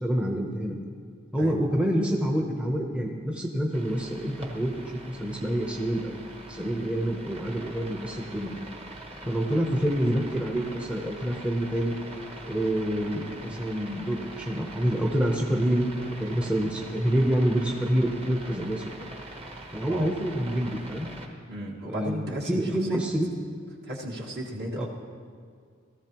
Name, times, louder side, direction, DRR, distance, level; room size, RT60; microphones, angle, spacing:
voice 1, 0.0-0.8 1.3-4.7 5.1-6.2 6.5-8.6 9.3-11.9 12.5-15.9 16.2-18.9 19.7-21.1 21.8-23.3 24.8-24.9, equal, 5° right, 0 dB, 0.8 m, -27 dB
sound 1, 3.7-21.3, right 1 dB, 30° right, 1.2 m, -43 dB
voice 2, 21.5-23.0 23.8-24.9, right 1 dB, 55° right, -3 dB, 1.8 m, -34 dB
18.0 x 14.0 x 3.0 m, 2.1 s
head